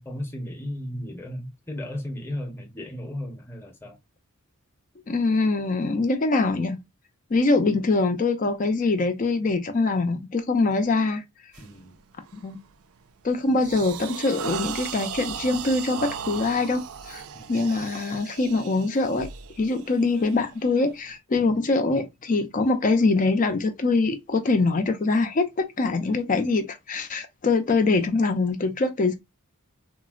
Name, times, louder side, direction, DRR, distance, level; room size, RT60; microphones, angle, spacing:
voice 1, 0.0-4.0 11.6-12.0 17.3-17.7 21.4-21.6, left 1 dB, 10° left, 0.8 m, -35 dB
voice 2, 5.1-6.8 7.3-11.2 12.4-12.6 13.2-17.2 17.5-19.3 19.6-29.2, left 3 dB, 35° left, 0.4 m, -23 dB
sound 1, 11.5-11.8 12.3-12.6 13.0-21.1, right 8 dB, 65° right, 0.4 m, -37 dB
3.6 x 2.0 x 2.3 m
head